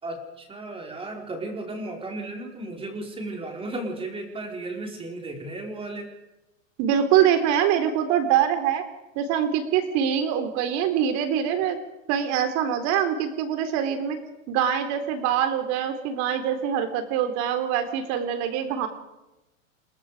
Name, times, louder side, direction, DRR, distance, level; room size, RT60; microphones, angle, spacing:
voice 1, 0.0-6.1, right 2 dB, 15° right, 2 dB, 4.9 m, -34 dB
voice 2, 6.8-8.8 9.2-11.8 12.1-14.2 14.5-18.9, right 9 dB, 40° right, 8 dB, 3.9 m, -24 dB
29.5 x 20.0 x 5.1 m, 0.95 s
hypercardioid pair, 130°, 40 cm